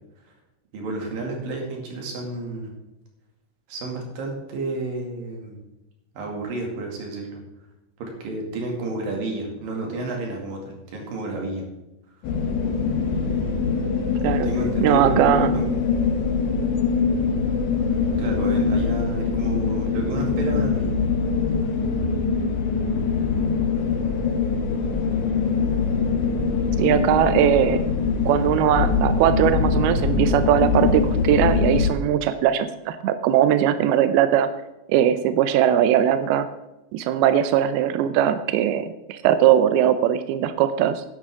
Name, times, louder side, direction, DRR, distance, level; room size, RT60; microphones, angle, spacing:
voice 1, 0.7-2.7 3.7-5.6 6.2-7.4 8.0-11.7 14.4-15.6 18.2-20.9, right 2 dB, 55° right, 0 dB, 3.7 m, -31 dB
sound 1, 12.2-31.9, left 5 dB, 85° left, 3.7 m, -23 dB
voice 2, 14.8-15.5 26.8-27.8 28.3-34.5 34.9-36.5 36.9-41.0, right 10 dB, 85° right, 11 dB, 2.2 m, -20 dB
12.0 x 11.0 x 3.7 m, 0.96 s
omnidirectional pair, 5.2 m